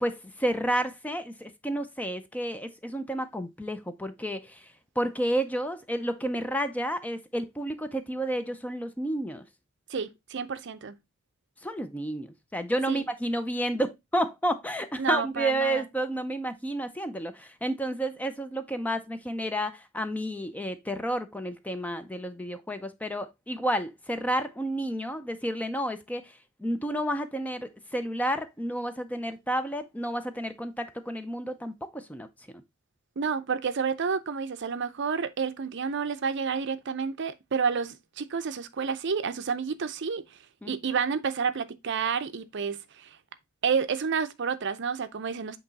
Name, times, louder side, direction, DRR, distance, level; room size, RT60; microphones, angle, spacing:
voice 1, 0.0-9.4 11.6-32.6 40.6-40.7, right 1 dB, 5° left, 0.5 m, -31 dB
voice 2, 9.9-11.0 12.9-13.0 15.0-15.8 33.2-40.2 40.7-43.1 43.6-45.6, right 6 dB, 55° right, 0.5 m, -30 dB
7.9 x 3.0 x 3.9 m
head